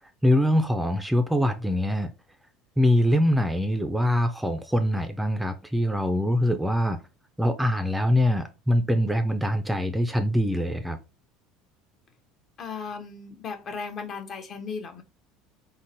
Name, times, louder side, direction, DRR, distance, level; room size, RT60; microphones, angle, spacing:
voice 1, 0.2-2.1 2.8-7.0 7.4-11.0, left 1 dB, 5° right, 0.4 m, -23 dB
voice 2, 12.6-15.0, left 5 dB, 45° left, 0.7 m, -36 dB
3.7 x 2.0 x 2.8 m
supercardioid pair, 90°, 0 cm